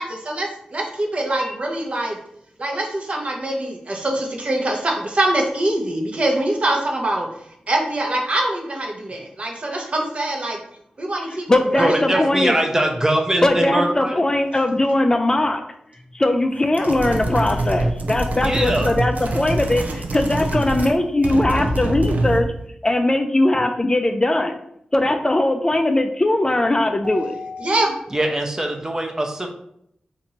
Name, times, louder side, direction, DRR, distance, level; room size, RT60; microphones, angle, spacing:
voice 1, 0.0-2.2 2.6-7.3 7.7-10.6 11.0-12.3 27.0-27.9, right 1 dB, 50° right, 0 dB, 0.8 m, -24 dB
voice 2, 11.3-12.5 13.4-15.6 16.1-22.5 22.8-24.6 24.9-27.4, left 1 dB, 25° left, 6 dB, 0.3 m, -20 dB
voice 3, 11.8-14.1 18.4-19.0 28.1-29.5, right 1 dB, 20° right, 3 dB, 0.6 m, -22 dB
sound 1, 16.7-21.0 21.2-22.5, right 1 dB, 70° right, 0.5 m, -24 dB
2.8 x 2.6 x 4.2 m, 0.72 s
wide cardioid pair, 75°, 3 cm